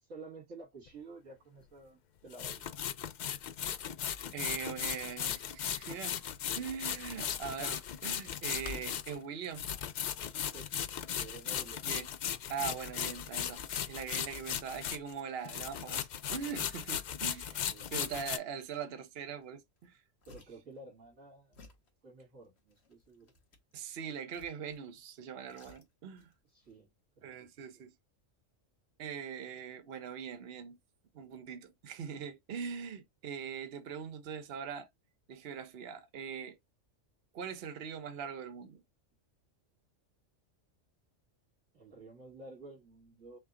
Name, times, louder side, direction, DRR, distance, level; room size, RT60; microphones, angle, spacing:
voice 1, 0.0-2.7 10.4-10.7 11.0-11.9 17.5-17.9 20.3-21.7 22.0-23.3 26.5-27.5 27.7-27.8 41.7-43.4, right 3 dB, 90° right, 2.3 m, -52 dB
sound 1, 0.9-1.0 2.3-15.2 15.4-18.4, left 9 dB, 80° left, 0.4 m, -37 dB
voice 2, 4.3-6.2 6.6-9.8 11.8-12.1 12.5-13.6 13.9-20.0 23.7-26.3 27.2-27.9 29.0-30.8 31.1-34.9 35.3-36.6 37.3-38.8, right 7 dB, 55° right, 1.0 m, -42 dB
sound 2, 19.4-19.5 19.8-20.7 21.5-21.9 22.6-23.7 24.3-24.9 25.2-26.3 26.6-26.7, left 2 dB, 55° left, 1.4 m, -59 dB
5.7 x 2.2 x 3.7 m
omnidirectional pair, 1.3 m